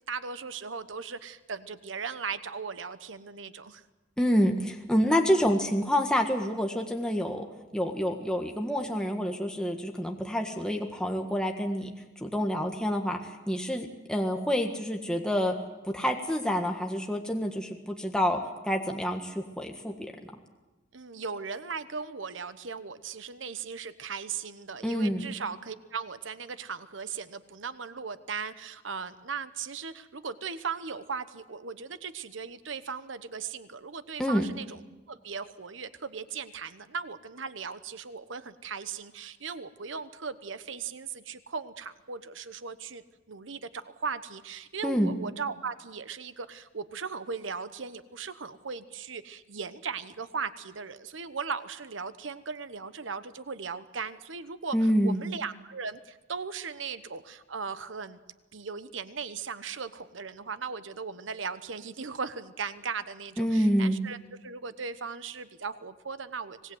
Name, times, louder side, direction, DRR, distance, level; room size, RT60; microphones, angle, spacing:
voice 1, 0.1-3.8 20.9-34.8 35.1-58.2 58.5-66.8, right 5 dB, 90° right, 12 dB, 1.1 m, -38 dB
voice 2, 4.2-7.4 7.7-11.9 12.2-15.5 15.9-18.4 18.6-20.1 24.8-25.3 34.2-34.4 44.8-45.1 54.7-55.2 63.4-64.0, equal, 5° left, 2 dB, 1.6 m, -27 dB
25.5 x 19.0 x 7.9 m, 1.1 s
head